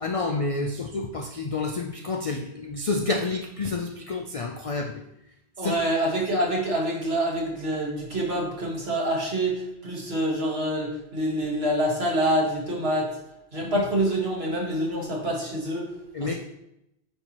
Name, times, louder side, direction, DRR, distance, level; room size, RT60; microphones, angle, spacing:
voice 1, 0.0-5.0 5.6-5.7 16.1-16.3, left 3 dB, 55° left, 4 dB, 0.4 m, -29 dB
voice 2, 5.6-13.1 13.5-15.9 16.2-16.4, right 1 dB, 65° right, -3 dB, 1.8 m, -26 dB
8.7 x 4.4 x 2.9 m, 0.85 s
omnidirectional pair, 1.2 m